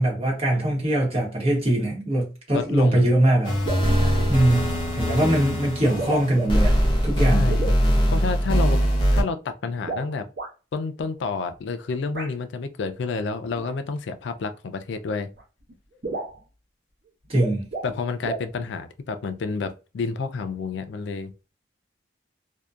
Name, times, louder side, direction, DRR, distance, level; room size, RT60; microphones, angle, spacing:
voice 1, 0.0-3.6 4.3-6.8 7.0-7.5 17.3-17.7, right 1 dB, 30° right, 0.9 m, -22 dB
voice 2, 2.5-3.1 3.9-4.6 7.3-7.8 8.1-8.8 9.1-10.3 10.7-15.3 17.8-21.3, left 4 dB, 75° left, 0.4 m, -29 dB
sound 1, 3.2-3.4 3.6-4.0 5.1-5.2 5.9-6.8 7.5-7.8 9.8-10.5 12.1-12.3 13.6-13.7 14.9-15.0 15.4-15.5 15.7-15.8 16.0-16.4 17.2-18.0 18.2-18.5, right 3 dB, 65° right, 0.9 m, -32 dB
sound 2, 3.4-9.2, equal, 25° left, 0.6 m, -22 dB
2.6 x 2.1 x 2.3 m
head